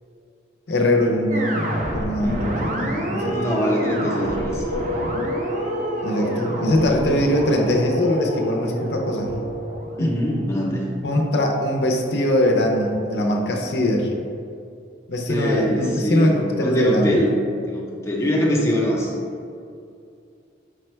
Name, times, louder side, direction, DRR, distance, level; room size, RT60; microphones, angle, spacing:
voice 1, 0.7-1.5 1.9-3.5 6.0-9.4 10.0-10.1 11.0-14.1 15.1-17.1, left 1 dB, 65° left, 1 dB, 0.5 m, -21 dB
sound 1, 1.3-10.6, equal, 45° right, 0.5 m, -30 dB
voice 2, 2.2-2.6 3.2-5.2 10.0-10.9 15.3-17.3 17.7-19.1, equal, 15° left, -3 dB, 0.5 m, -23 dB
Wind instrument woodwind instrument, 3.1-9.8, right 4 dB, 65° right, 1.1 m, -33 dB
sound 2, 4.0-8.6, left 2 dB, 85° right, 0.9 m, -32 dB
4.9 x 2.1 x 4.3 m, 2.4 s
head